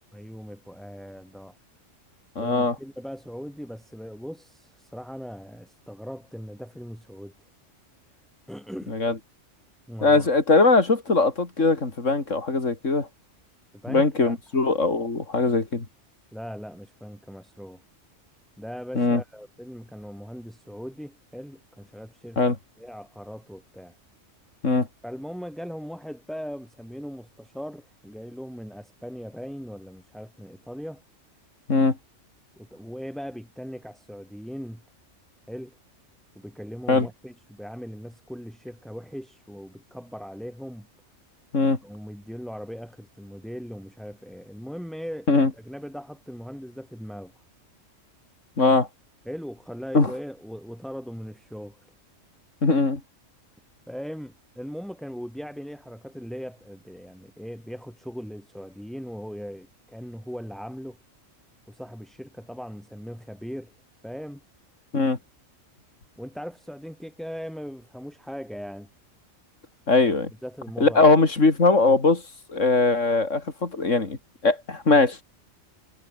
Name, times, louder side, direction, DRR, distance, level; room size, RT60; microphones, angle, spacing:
voice 1, 0.1-1.5 2.4-7.3 8.5-9.0 9.9-10.3 13.8-14.4 16.3-17.8 18.6-22.4 22.8-24.0 25.0-31.0 32.6-34.8 35.5-35.8 36.3-40.9 41.8-47.3 49.3-51.8 53.9-61.0 61.7-63.7 64.0-64.4 66.2-68.9 70.4-71.1, equal, ahead, 7.8 m, -39 dB
voice 2, 2.4-2.8 8.9-9.2 10.0-13.1 13.9-15.9 19.0-19.2 22.4-22.6 24.6-24.9 31.7-32.0 36.9-37.1 41.5-41.8 45.3-45.5 48.6-48.9 49.9-50.1 52.6-53.0 64.9-65.2 69.9-70.3 70.8-72.2 72.5-75.2, left 3 dB, 70° left, 3.7 m, -21 dB
omnidirectional pair, 1.3 m